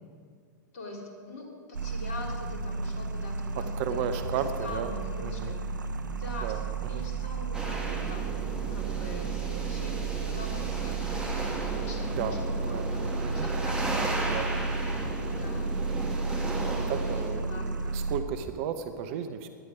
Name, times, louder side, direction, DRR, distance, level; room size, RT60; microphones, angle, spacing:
voice 1, 0.7-5.6 6.1-6.6 6.9-8.4 8.7-14.2 15.3-15.8 17.0-18.0, left 2 dB, 50° left, 0 dB, 3.6 m, -43 dB
sound 1, 1.7-18.2, right 4 dB, 75° right, 0.9 m, -33 dB
sound 2, 3.6-5.1 6.6-7.4 9.2-9.3 9.7-10.6 10.9-11.2 14.3-15.4 15.7-15.8 17.6-18.6, left 1 dB, 15° left, 1.7 m, -52 dB
voice 2, 3.8-4.9 5.2-5.6 6.4-7.0 12.2-12.3 12.6-12.9 13.2-13.5 14.2-14.5 16.9-19.5, right 8 dB, 45° right, 9 dB, 0.9 m, -34 dB
sound 3, 7.5-17.3, right 2 dB, 5° right, 2.7 m, -35 dB
18.0 x 11.5 x 5.1 m, 2.1 s
figure-of-eight pair, 100°, 10 cm